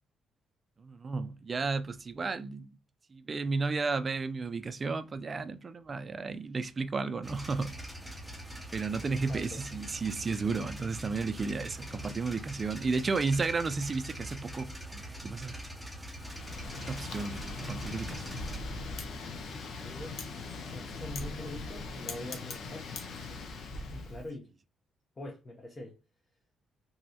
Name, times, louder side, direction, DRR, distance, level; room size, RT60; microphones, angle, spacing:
voice 1, 0.8-2.7 3.1-7.7 8.7-15.5 16.9-18.4 18.7-18.8, right 4 dB, 35° right, 0.4 m, -33 dB
sound 1, 7.2-18.6, right 1 dB, ahead, 0.7 m, -43 dB
voice 2, 9.0-9.6 19.8-22.9 23.9-24.5 25.2-26.0, left 1 dB, 30° left, 0.8 m, -44 dB
Wind, 16.1-24.3, left 3 dB, 65° left, 0.7 m, -40 dB
3.0 x 2.7 x 2.8 m
cardioid pair, 90°, 0 cm